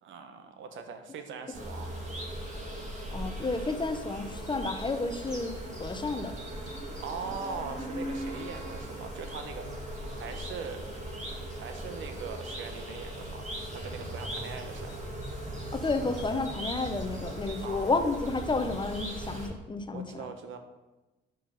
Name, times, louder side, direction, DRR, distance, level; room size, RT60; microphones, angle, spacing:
voice 1, 0.0-1.9 7.0-10.9 11.5-14.9 17.6-17.9 19.9-20.6, right 5 dB, 75° right, 7 dB, 0.9 m, -41 dB
sound 1, 1.5-19.5, right 1 dB, 35° right, 2.1 m, -38 dB
voice 2, 3.1-6.3 15.7-20.3, left 3 dB, 25° left, 7 dB, 0.7 m, -31 dB
5.4 x 5.3 x 5.4 m, 1.1 s
cardioid pair, 90°, 20 cm